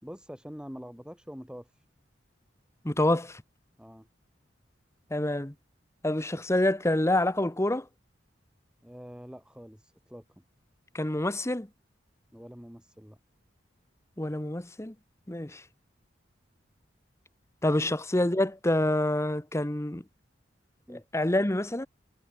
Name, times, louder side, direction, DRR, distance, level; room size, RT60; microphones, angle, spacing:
voice 1, 0.0-1.8 3.8-4.1 8.8-10.4 12.3-13.2 17.8-17.9 20.9-21.0, equal, 5° right, 4.1 m, -45 dB
voice 2, 2.8-3.4 5.1-5.5 6.0-7.9 10.9-11.7 14.2-14.9 15.3-15.6 17.6-20.0 20.9-21.9, left 1 dB, 15° left, 1.1 m, -27 dB
head